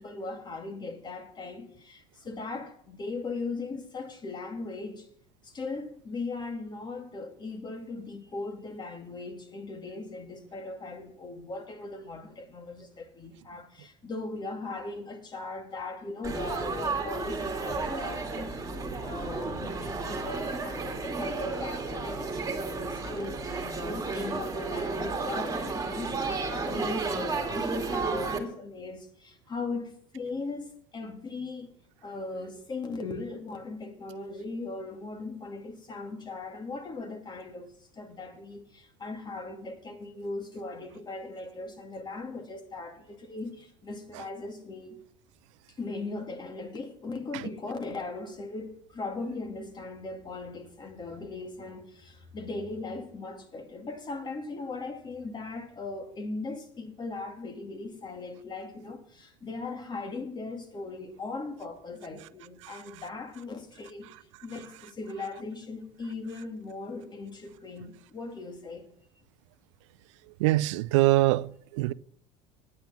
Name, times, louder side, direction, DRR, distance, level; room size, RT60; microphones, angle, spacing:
voice 1, 0.0-5.1 5.4-18.5 19.0-31.7 32.0-45.0 45.8-68.9, left 3 dB, 30° left, 2.4 m, -39 dB
Laughter / Chatter / Crowd, 16.2-28.4, right 3 dB, 20° right, 2.2 m, -32 dB
voice 2, 70.4-71.9, right 18 dB, 85° right, 0.4 m, -24 dB
9.3 x 9.2 x 5.8 m
supercardioid pair, 100°, 15 cm